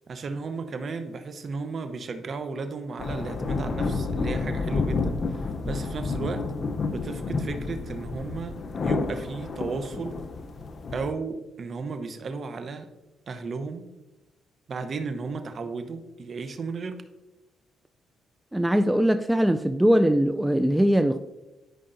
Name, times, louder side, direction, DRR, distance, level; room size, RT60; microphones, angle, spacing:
voice 1, 0.1-6.5 6.9-10.2 10.9-12.9 13.3-13.8 14.7-17.0, right 4 dB, 50° right, 8 dB, 0.8 m, -34 dB
sound 1, 3.0-11.1, left 4 dB, 45° left, 0.7 m, -30 dB
voice 2, 18.5-21.2, equal, 5° right, 8 dB, 0.4 m, -21 dB
12.5 x 5.3 x 2.6 m, 1.0 s
cardioid pair, 90°, 0 cm